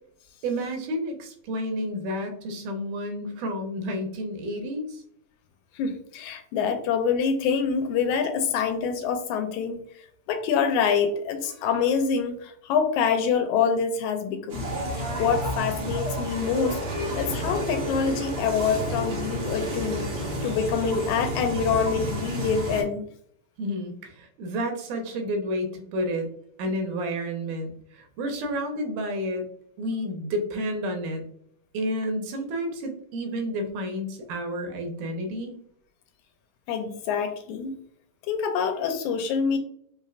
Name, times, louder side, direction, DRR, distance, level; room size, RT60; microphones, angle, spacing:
voice 1, 0.4-5.0 23.6-26.3 26.6-29.5 29.8-31.2 31.7-35.6, equal, 80° right, 4 dB, 2.3 m, -30 dB
voice 2, 5.8-9.8 10.3-14.7 15.0-16.8 17.2-20.1 20.4-23.1 36.7-37.8 38.3-39.6, left 6 dB, 80° left, 6 dB, 1.8 m, -26 dB
sound 1, 14.5-22.8, right 1 dB, 65° right, 1.0 m, -31 dB
5.5 x 3.2 x 2.4 m, 0.66 s
omnidirectional pair, 3.6 m